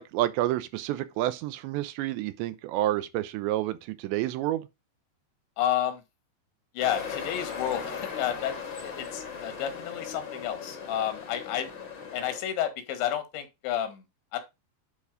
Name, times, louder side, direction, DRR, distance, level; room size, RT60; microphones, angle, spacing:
voice 1, 0.0-4.7, right 14 dB, 85° right, 3.0 m, -29 dB
voice 2, 5.6-6.0 6.8-11.7 12.1-14.0 14.3-14.4, left 11 dB, 90° left, 3.9 m, -31 dB
sound 1, 6.8-12.4, left 6 dB, 55° left, 1.3 m, -38 dB
9.8 x 4.3 x 4.9 m
omnidirectional pair, 5.0 m